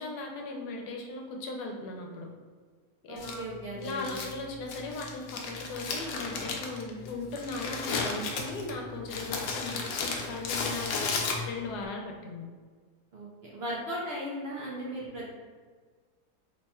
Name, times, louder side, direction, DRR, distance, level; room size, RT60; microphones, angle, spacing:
voice 1, 0.0-2.3 3.0-3.4 3.8-11.1 11.5-12.4, left 3 dB, 85° left, 1 dB, 1.2 m, -38 dB
voice 2, 3.1-4.2 13.1-15.3, equal, 55° right, -6 dB, 0.7 m, -37 dB
Crumpling crinkling, 3.2-11.8, left 4 dB, 70° left, 0.9 m, -35 dB
3.3 x 2.3 x 4.1 m, 1.5 s
omnidirectional pair, 1.7 m